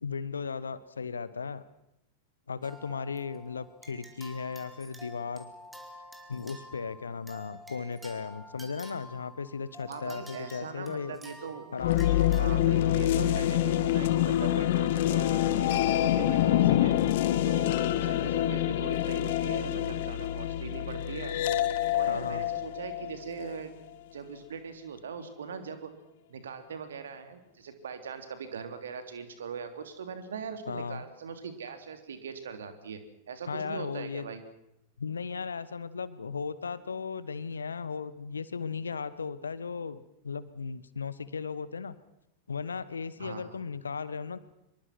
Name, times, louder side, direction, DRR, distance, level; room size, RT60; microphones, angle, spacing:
voice 1, 0.0-1.6 2.5-5.5 6.3-11.2 11.7-13.0 22.1-22.5 30.7-31.0 33.5-34.3 35.0-41.9 42.5-44.4, left 5 dB, 75° left, 16 dB, 1.3 m, -36 dB
sound 1, 2.6-12.4, left 1 dB, 5° right, 4.2 m, -49 dB
voice 2, 9.9-11.7 12.4-16.9 17.3-21.4 21.9-23.7 24.1-25.9 26.3-33.0 33.3-34.4 43.2-43.6, right 6 dB, 65° right, 8 dB, 3.3 m, -41 dB
sound 2, 11.8-23.6, left 12 dB, 55° left, 1.4 m, -26 dB
25.5 x 22.5 x 6.2 m, 0.82 s
figure-of-eight pair, 90°, 0 cm